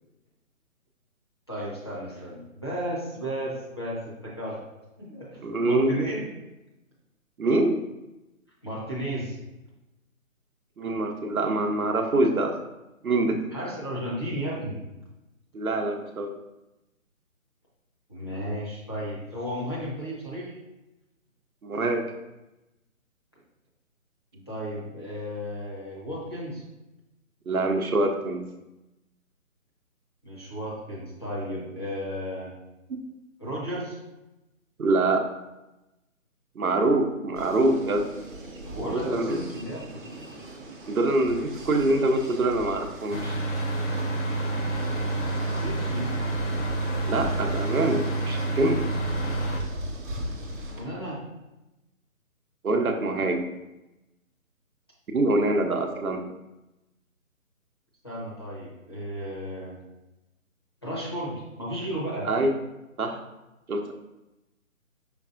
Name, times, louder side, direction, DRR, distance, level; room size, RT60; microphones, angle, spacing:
voice 1, 1.5-4.6 5.0-6.3 8.6-9.4 13.5-14.8 18.1-20.5 24.3-26.6 30.2-32.5 33.4-34.0 38.6-40.0 45.5-46.2 50.7-51.3 58.0-59.8 60.8-62.3, equal, 20° left, -7 dB, 0.6 m, -34 dB
voice 2, 5.4-5.9 7.4-7.8 10.8-12.5 13.0-13.4 15.5-16.3 21.6-22.0 27.5-28.4 32.9-33.0 34.8-35.3 36.6-38.0 38.8-39.4 40.9-43.4 47.0-48.8 52.6-53.4 55.1-56.2 62.2-62.5 63.0-63.2 63.7-63.9, right 2 dB, 80° right, 4 dB, 0.8 m, -24 dB
sound 1, 37.4-50.8, equal, 35° right, 0.7 m, -39 dB
sound 2, 43.1-49.6, right 2 dB, 60° left, 0.9 m, -28 dB
5.3 x 3.6 x 2.4 m, 0.97 s
figure-of-eight pair, 150°, 42 cm